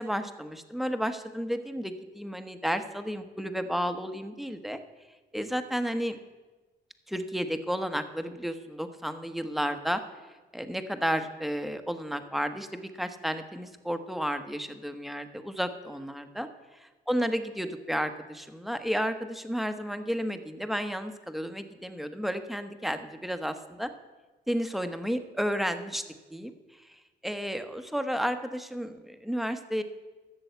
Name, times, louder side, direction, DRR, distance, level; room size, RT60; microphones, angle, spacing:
voice 1, 0.0-4.8 5.3-6.2 7.1-10.0 10.5-16.5 17.1-23.9 24.5-26.0 26.3-26.5 27.2-29.8, equal, ahead, 8 dB, 1.0 m, -32 dB
13.0 x 6.9 x 8.1 m, 1.2 s
cardioid pair, 90°, 18 cm